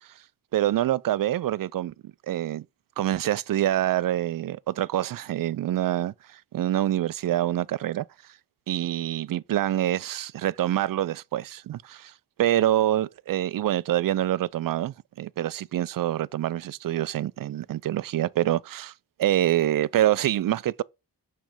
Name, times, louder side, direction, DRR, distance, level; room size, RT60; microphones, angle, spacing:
voice 1, 0.5-2.7 3.0-8.1 8.7-12.1 12.4-18.9 19.2-20.8, right 12 dB, 50° right, 0.5 m, -26 dB
6.0 x 3.4 x 5.0 m
cardioid pair, 45°, 43 cm